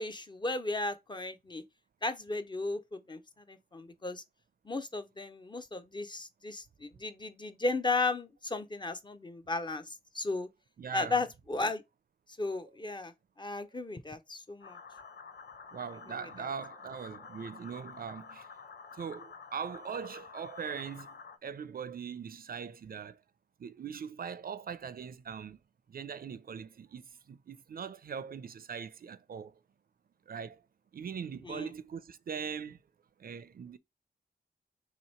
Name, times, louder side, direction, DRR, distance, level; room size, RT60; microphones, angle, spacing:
voice 1, 0.0-1.6 2.0-3.2 3.5-4.2 4.7-9.8 10.1-10.5 10.9-11.8 12.4-13.1 13.4-14.8 31.4-31.7, left 3 dB, 25° left, 0.5 m, -35 dB
voice 2, 10.8-11.2 15.7-18.5 19.0-21.2 21.4-23.2 23.6-25.6 25.9-29.5 30.3-30.6 30.9-32.8 33.2-33.8, right 7 dB, 60° right, 0.4 m, -41 dB
sound 1, 14.6-21.4, left 5 dB, 75° left, 0.6 m, -49 dB
3.1 x 2.9 x 4.2 m
wide cardioid pair, 80°, 17 cm